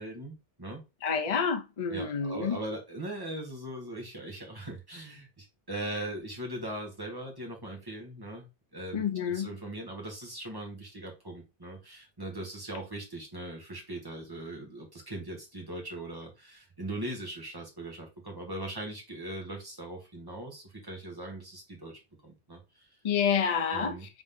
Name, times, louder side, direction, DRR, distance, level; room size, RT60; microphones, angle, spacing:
voice 1, 0.0-0.8 1.9-8.5 8.7-22.9 23.7-24.1, right 1 dB, 20° right, 1.4 m, -40 dB
voice 2, 1.0-2.6 8.9-9.5 23.0-24.0, left 6 dB, 40° left, 0.6 m, -28 dB
3.8 x 3.6 x 3.5 m
omnidirectional pair, 1.1 m